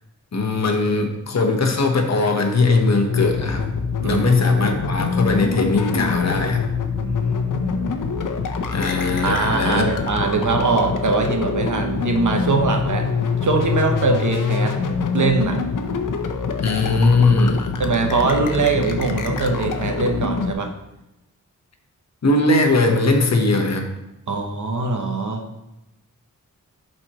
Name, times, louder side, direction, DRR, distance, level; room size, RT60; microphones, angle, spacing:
voice 1, 0.3-3.6 4.0-6.6 8.7-9.9 16.6-17.7 22.2-23.8, left 3 dB, 55° left, 3 dB, 1.0 m, -19 dB
sound 1, 3.1-20.5, left 5 dB, 70° left, 0.8 m, -25 dB
voice 2, 7.0-7.7 9.2-13.1 13.4-14.8 15.1-15.6 17.8-20.7 24.3-25.4, right 4 dB, 65° right, 3 dB, 1.0 m, -22 dB
11.0 x 4.3 x 3.0 m, 0.94 s
wide cardioid pair, 95°, 32 cm